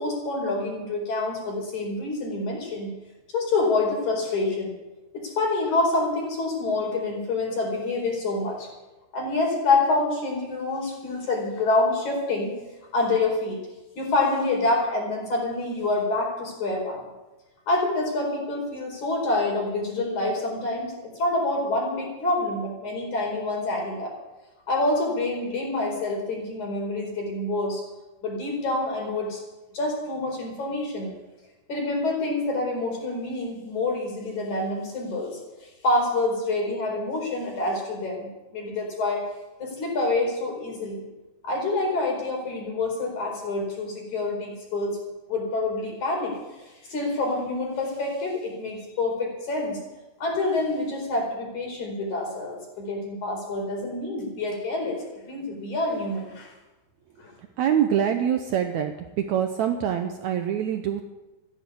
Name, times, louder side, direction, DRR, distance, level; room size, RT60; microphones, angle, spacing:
voice 1, 0.0-2.9 3.3-4.7 5.1-8.7 9.1-12.5 12.9-13.6 14.0-17.0 17.7-24.1 24.7-27.8 28.2-29.4 29.7-31.1 31.7-35.4 35.8-39.3 39.6-41.0 41.4-45.0 45.3-49.8 50.2-56.5 57.2-57.3, left 2 dB, 50° left, 0 dB, 5.7 m, -27 dB
voice 2, 57.6-61.0, right 9 dB, 80° right, 6 dB, 1.6 m, -25 dB
15.0 x 11.0 x 8.5 m, 1.1 s
omnidirectional pair, 4.4 m